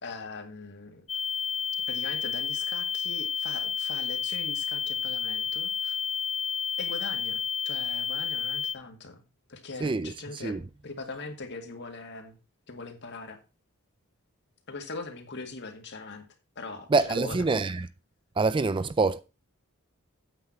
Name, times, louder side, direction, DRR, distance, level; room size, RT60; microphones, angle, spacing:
voice 1, 0.0-1.1 1.9-6.0 6.8-9.2 9.5-10.6 10.8-12.4 12.7-13.4 14.7-16.2 16.6-17.4, left 3 dB, 50° left, 2.0 m, -41 dB
sound 1, 1.1-8.7, left 7 dB, 30° left, 0.6 m, -31 dB
voice 2, 9.8-10.6 16.9-17.9 18.4-19.2, right 3 dB, 25° right, 0.4 m, -26 dB
9.0 x 7.8 x 4.4 m
head